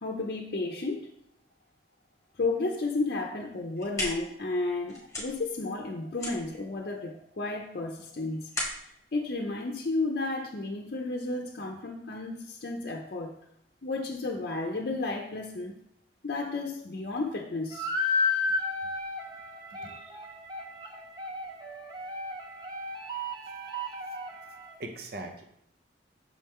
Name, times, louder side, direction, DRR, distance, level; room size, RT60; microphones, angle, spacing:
voice 1, 0.0-1.1 2.4-8.5 9.1-13.3 13.8-15.7 16.2-17.9, left 3 dB, 55° left, 0 dB, 0.6 m, -32 dB
sound 1, 3.5-10.4, left 1 dB, 20° left, 1.7 m, -39 dB
sound 2, 17.7-24.8, left 3 dB, 25° right, 0.6 m, -33 dB
voice 2, 19.8-20.2 24.8-25.4, right 2 dB, 60° right, 5 dB, 0.7 m, -41 dB
6.2 x 4.3 x 3.6 m, 0.73 s
head